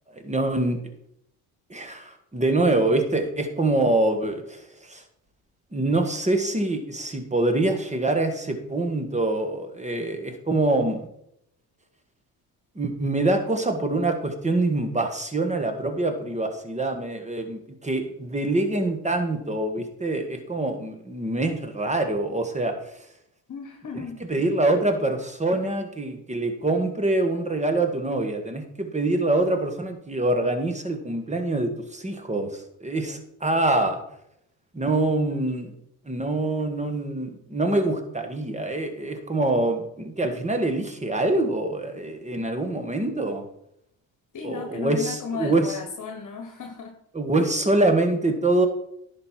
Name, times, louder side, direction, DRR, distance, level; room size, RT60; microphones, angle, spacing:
voice 1, 0.1-0.8 1.7-5.0 5.7-11.1 12.7-23.0 24.3-34.0 34.7-35.7 36.0-43.5 44.4-45.8 47.1-48.7, right 2 dB, 15° right, 6 dB, 1.8 m, -25 dB
voice 2, 23.5-24.2 44.3-46.9, left 5 dB, 50° left, 4 dB, 1.4 m, -35 dB
10.5 x 5.6 x 4.5 m, 0.75 s
supercardioid pair, 70°, 41 cm